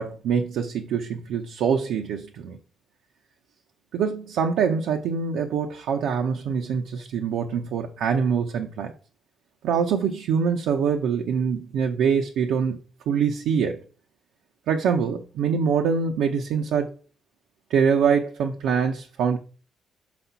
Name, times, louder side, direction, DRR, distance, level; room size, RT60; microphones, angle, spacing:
voice 1, 0.0-2.6 3.9-8.9 9.6-12.8 13.1-13.8 14.7-16.9 17.7-19.4, right 6 dB, 85° right, 0.7 m, -24 dB
5.6 x 4.2 x 5.5 m
cardioid pair, 90°, 0 cm